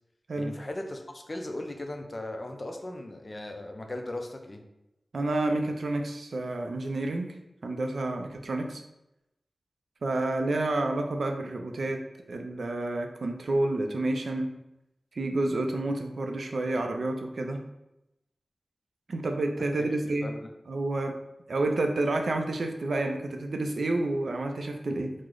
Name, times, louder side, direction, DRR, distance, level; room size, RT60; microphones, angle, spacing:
voice 1, 0.4-4.6 19.8-19.9 20.2-20.5, left 1 dB, 35° left, 4 dB, 0.4 m, -37 dB
voice 2, 5.1-7.3 7.6-8.8 10.0-12.0 12.3-14.5 15.1-17.6 19.1-20.3 20.7-21.2 21.5-25.1, right 2 dB, 70° right, 4 dB, 0.4 m, -29 dB
3.0 x 2.0 x 3.7 m, 0.89 s
wide cardioid pair, 85°, 0 cm